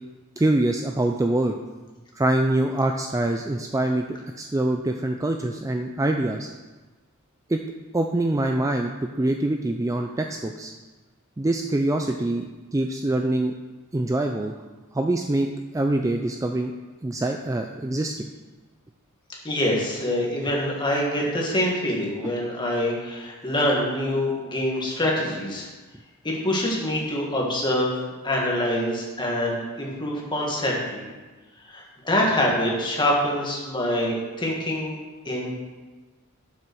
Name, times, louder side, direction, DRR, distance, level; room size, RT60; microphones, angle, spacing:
voice 1, 0.4-1.6 2.1-4.1 4.4-6.5 7.5-7.6 7.9-10.7 11.4-13.5 13.9-14.5 14.9-16.7 17.0-18.3 22.2-22.3, right 1 dB, 15° right, 4 dB, 0.4 m, -24 dB
voice 2, 19.4-25.7 26.2-28.0 28.2-31.0 31.7-35.0 35.3-35.5, left 1 dB, 20° left, -2 dB, 1.9 m, -25 dB
7.5 x 6.1 x 6.3 m, 1.3 s
head